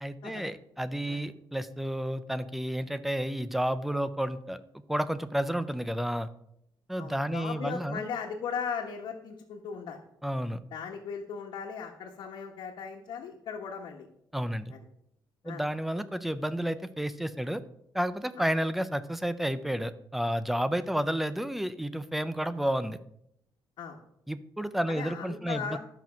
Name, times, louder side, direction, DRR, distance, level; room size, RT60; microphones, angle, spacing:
voice 1, 0.0-4.6 4.9-6.3 6.9-8.0 10.2-10.6 14.3-14.7 15.4-17.6 17.9-23.0 24.3-25.8, equal, ahead, 13 dB, 0.5 m, -31 dB
voice 2, 7.0-10.0 10.7-14.1 14.7-14.8 15.4-15.6 18.4-18.5 23.8-24.0 24.9-25.8, left 6 dB, 65° left, -1 dB, 1.3 m, -37 dB
12.0 x 6.0 x 5.7 m, 0.76 s
cardioid pair, 170°, 8 cm